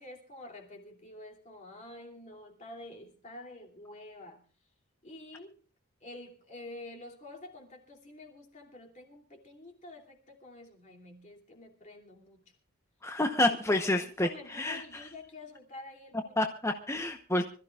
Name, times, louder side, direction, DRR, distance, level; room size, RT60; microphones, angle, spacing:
voice 1, 0.0-4.5 5.0-5.6 6.0-12.6 13.4-16.5, left 2 dB, 35° left, 2.8 m, -48 dB
voice 2, 13.0-14.8 16.4-17.4, left 1 dB, 10° left, 0.9 m, -29 dB
25.5 x 14.5 x 2.4 m
head